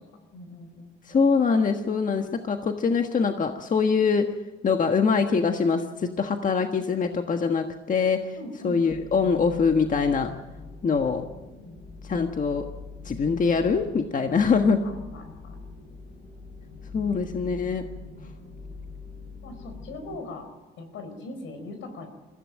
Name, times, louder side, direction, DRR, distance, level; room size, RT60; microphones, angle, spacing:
voice 1, 0.3-0.9 8.3-8.8 11.2-11.8 14.6-15.6 18.1-18.7 19.4-20.5 20.8-22.1, left 2 dB, 80° left, 7 dB, 4.7 m, -41 dB
voice 2, 1.1-4.3 4.6-8.3 8.6-10.3 10.8-11.2 12.1-12.7 13.0-14.8 16.9-17.8, left 5 dB, 40° left, 5 dB, 1.4 m, -23 dB
sound 1, 8.9-20.2, left 4 dB, 60° left, 6.3 m, -43 dB
22.0 x 15.5 x 7.7 m, 1.2 s
cardioid pair, 90°, 20 cm